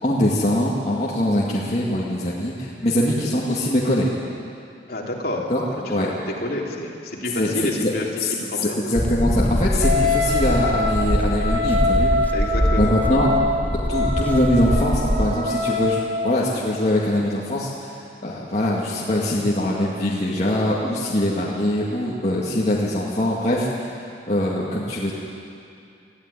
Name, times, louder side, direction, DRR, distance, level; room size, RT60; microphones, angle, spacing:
voice 1, 0.0-4.1 5.5-5.6 5.9-6.1 7.4-7.5 7.8-7.9 8.9-12.1 12.8-13.3 13.9-25.1, left 1 dB, 40° left, -5 dB, 2.2 m, -22 dB
voice 2, 4.9-8.8 12.3-13.5, left 1 dB, 55° left, -2 dB, 3.2 m, -29 dB
sound 1, 9.0-15.4, equal, 10° left, 0.6 m, -23 dB
Wind instrument woodwind instrument, 9.8-16.4, left 2 dB, 60° right, 2.0 m, -24 dB
21.0 x 14.5 x 9.9 m, 2.5 s
head